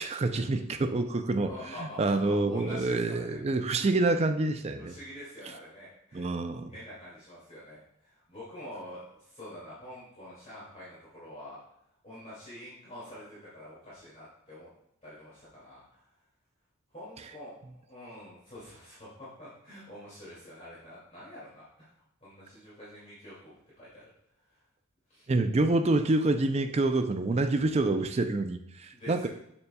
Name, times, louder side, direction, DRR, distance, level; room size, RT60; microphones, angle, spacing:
voice 1, 0.0-1.5 2.0-4.9 6.1-6.7 25.3-29.3, right 2 dB, 30° right, 7 dB, 0.4 m, -27 dB
voice 2, 1.5-3.4 4.8-6.3 6.7-11.6 12.0-14.7 15.0-16.0 16.9-21.7 22.2-24.0 25.1-25.3 28.9-29.3, left 1 dB, 30° left, -9 dB, 2.3 m, -46 dB
7.0 x 6.5 x 2.3 m, 0.78 s
head